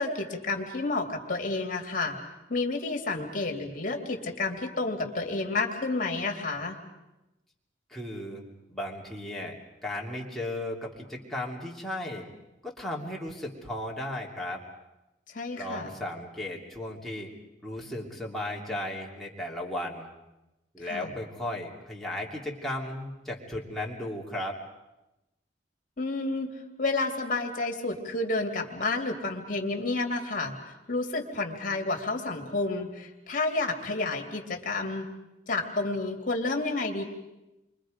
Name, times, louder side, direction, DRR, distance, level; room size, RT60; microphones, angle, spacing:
voice 1, 0.0-2.2 2.5-6.8 15.3-15.9 20.8-21.1 26.0-26.5 26.8-30.5 30.9-35.1 35.5-37.0, left 3 dB, 50° left, 2 dB, 2.7 m, -30 dB
voice 2, 7.9-9.5 9.8-12.2 12.6-14.6 15.5-17.3 17.6-20.1 20.7-24.6, left 1 dB, ahead, -3 dB, 2.9 m, -35 dB
29.5 x 24.0 x 5.2 m, 0.97 s
head